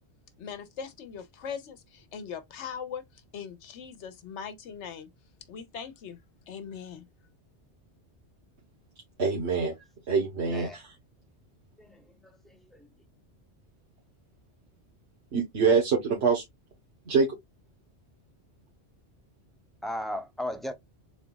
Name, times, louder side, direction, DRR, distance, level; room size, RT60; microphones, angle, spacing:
voice 1, 0.4-5.1 5.5-6.2 6.5-7.0, left 7 dB, 85° left, 1.1 m, -40 dB
voice 2, 9.2-9.7 10.1-10.9 15.3-16.4 17.0-17.3, right 5 dB, 75° right, 1.4 m, -25 dB
voice 3, 11.8-12.9 19.8-20.7, left 1 dB, ahead, 0.4 m, -37 dB
4.0 x 2.3 x 3.8 m
omnidirectional pair, 1.1 m